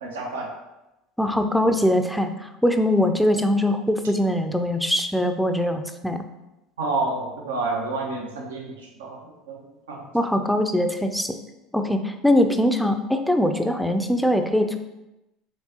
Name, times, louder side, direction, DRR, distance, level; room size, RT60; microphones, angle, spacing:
voice 1, 0.0-0.5 6.8-8.7 9.0-9.2 9.5-9.6 9.9-10.0, right 3 dB, 85° right, 0 dB, 0.8 m, -28 dB
voice 2, 1.2-6.2 10.1-11.4 11.7-14.8, left 1 dB, ahead, 6 dB, 0.4 m, -22 dB
4.5 x 3.3 x 2.9 m, 0.95 s
hypercardioid pair, 80°, 0 cm